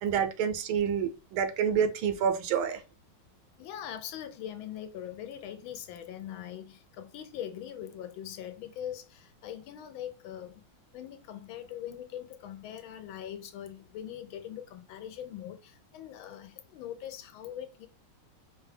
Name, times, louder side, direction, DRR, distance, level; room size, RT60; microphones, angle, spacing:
voice 1, 0.0-2.8, right 7 dB, 85° right, 1.5 m, -28 dB
voice 2, 3.6-10.6 10.9-17.9, left 10 dB, 80° left, 1.4 m, -42 dB
5.1 x 2.3 x 3.2 m
omnidirectional pair, 2.3 m